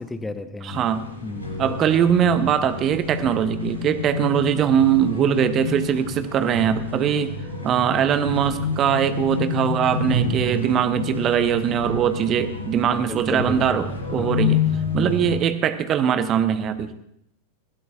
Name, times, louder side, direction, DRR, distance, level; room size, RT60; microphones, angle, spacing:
voice 1, 0.0-0.8 1.2-1.7 13.1-13.9 14.1-14.4, left 2 dB, 10° left, 11 dB, 0.9 m, -33 dB
voice 2, 0.6-1.0 1.6-7.3 7.6-14.6 14.9-17.0, right 8 dB, 30° right, 11 dB, 0.9 m, -21 dB
sound 1, 0.7-15.4, left 4 dB, 90° right, 3.6 m, -29 dB
20.0 x 15.5 x 2.4 m, 0.75 s
figure-of-eight pair, 90°, 0 cm